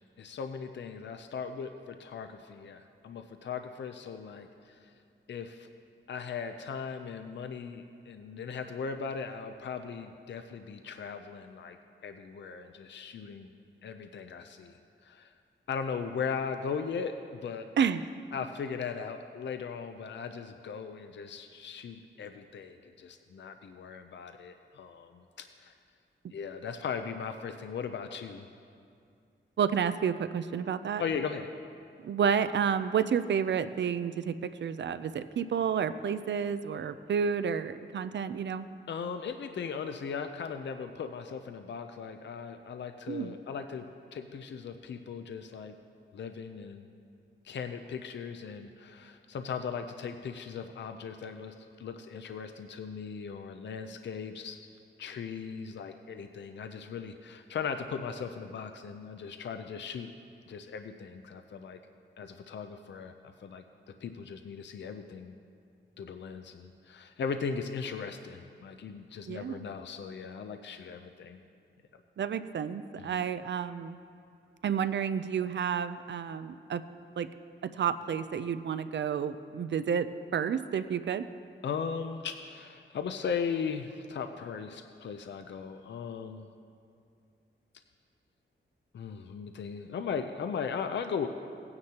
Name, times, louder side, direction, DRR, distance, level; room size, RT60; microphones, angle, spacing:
voice 1, 0.2-4.9 5.3-5.7 6.1-11.8 12.0-13.5 13.8-15.3 15.7-17.7 18.3-25.7 26.3-28.5 31.0-31.5 38.9-45.7 46.1-46.9 47.4-54.7 55.0-60.1 60.5-61.8 62.2-63.6 64.0-65.4 66.0-71.4 73.0-73.2 81.6-86.5 88.9-91.3, left 6 dB, 60° left, 7 dB, 0.5 m, -38 dB
voice 2, 29.6-31.0 32.0-34.4 34.6-38.7 43.1-43.4 69.3-69.7 72.2-74.0 74.6-76.8 77.2-77.3 77.8-81.3, right 7 dB, 60° right, 12 dB, 0.4 m, -30 dB
17.5 x 9.6 x 2.9 m, 2.4 s
wide cardioid pair, 130°, 21 cm